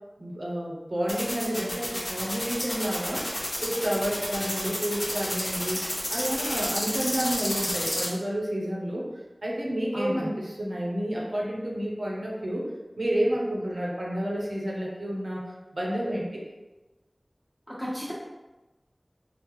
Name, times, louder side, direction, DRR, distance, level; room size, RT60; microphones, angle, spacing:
voice 1, 0.2-5.8 6.1-9.1 9.4-12.6 13.0-16.4, equal, 75° right, -3 dB, 0.6 m, -30 dB
sound 1, 1.1-8.1, left 1 dB, 50° left, 0.8 m, -30 dB
voice 2, 9.9-10.3 17.8-18.1, equal, 10° left, -7 dB, 1.1 m, -32 dB
3.6 x 2.0 x 3.0 m, 1.1 s
wide cardioid pair, 45°, 0 cm